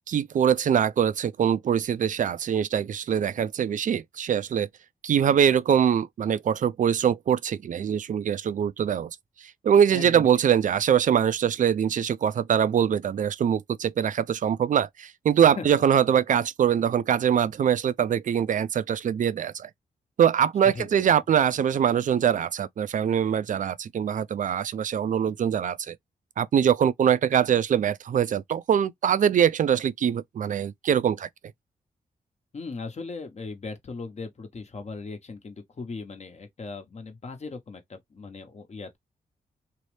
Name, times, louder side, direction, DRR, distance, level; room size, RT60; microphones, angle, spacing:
voice 1, 0.1-4.7 5.0-9.1 9.4-19.7 20.2-26.0 26.4-31.3, right 8 dB, 55° right, 0.4 m, -23 dB
voice 2, 9.9-10.3 15.6-15.7 20.7-21.0 32.5-39.0, left 4 dB, 45° left, 0.9 m, -38 dB
2.8 x 2.0 x 3.1 m
cardioid pair, 55°, 15 cm